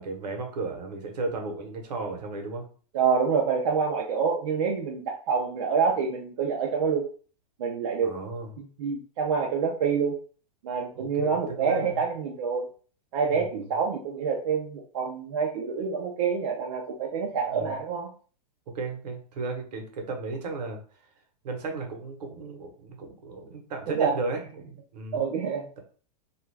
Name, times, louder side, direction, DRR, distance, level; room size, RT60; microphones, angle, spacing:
voice 1, 0.0-2.6 8.0-8.5 10.9-12.0 13.3-13.7 17.5-17.7 18.7-20.8 21.4-25.2, right 3 dB, 75° right, 3 dB, 0.9 m, -35 dB
voice 2, 2.9-7.0 7.6-8.2 8.6-10.1 10.6-12.7 13.1-18.1 23.9-24.2 25.1-25.7, right 6 dB, 50° right, -1 dB, 0.5 m, -27 dB
2.3 x 2.3 x 3.2 m, 0.42 s
supercardioid pair, 165°, 21 cm